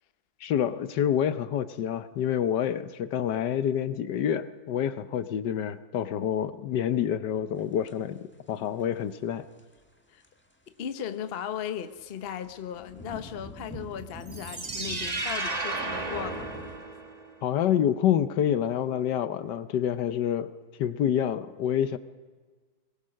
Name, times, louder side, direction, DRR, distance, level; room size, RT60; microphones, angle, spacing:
voice 1, 0.4-8.2 8.5-9.4 17.4-20.5 20.8-22.0, left 9 dB, 70° left, 1.3 m, -27 dB
sound 1, 7.6-8.3 8.8-9.1 9.4-10.5 10.9-16.8, equal, 5° left, 1.4 m, -46 dB
voice 2, 10.7-16.5, left 9 dB, 45° left, 0.8 m, -37 dB
sound 2, 14.2-17.3, right 2 dB, 25° right, 1.1 m, -33 dB
21.5 x 20.0 x 6.4 m
omnidirectional pair, 2.0 m